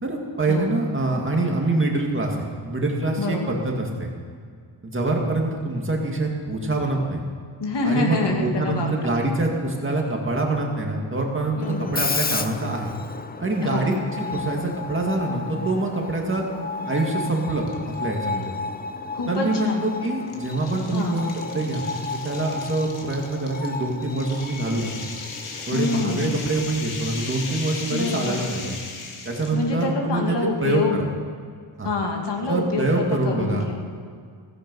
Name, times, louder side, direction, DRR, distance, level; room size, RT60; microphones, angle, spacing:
voice 1, 0.0-4.1 4.8-7.2 7.8-12.9 13.4-16.4 16.9-17.7 18.0-18.5 19.3-21.8 22.1-25.1 25.6-28.8 29.3-31.0 31.8-31.9 32.5-33.7, right 2 dB, 25° right, 0 dB, 2.1 m, -25 dB
voice 2, 3.2-3.5 7.6-9.1 11.6-11.9 13.6-13.9 14.2-14.4 19.1-19.9 20.9-21.2 25.7-26.4 27.9-28.5 29.5-31.0 31.8-33.7, left 3 dB, 55° left, 0 dB, 2.6 m, -26 dB
Screech, 11.6-28.2, left 4 dB, 20° left, 0.5 m, -34 dB
sound 1, 17.7-18.0 18.4-18.5 19.5-29.7, left 4 dB, 85° left, 2.4 m, -37 dB
16.5 x 16.0 x 5.4 m, 2.1 s
wide cardioid pair, 170°, 48 cm